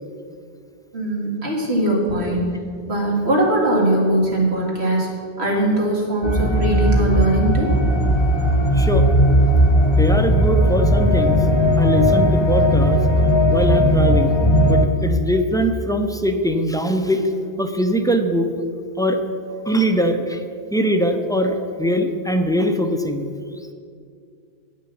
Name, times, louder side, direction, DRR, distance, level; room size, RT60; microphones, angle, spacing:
voice 1, 0.9-2.5 2.9-5.1 5.4-7.8, right 1 dB, 80° right, -3 dB, 2.4 m, -20 dB
sound 1, 6.2-14.9, equal, 30° left, 0.8 m, -17 dB
voice 2, 8.7-9.1 10.0-11.4 11.8-13.0 13.5-14.4 14.6-18.5 19.0-19.2 19.7-20.4 20.7-23.3, equal, 5° left, 5 dB, 0.4 m, -21 dB
9.7 x 6.2 x 7.1 m, 2.3 s
omnidirectional pair, 1.1 m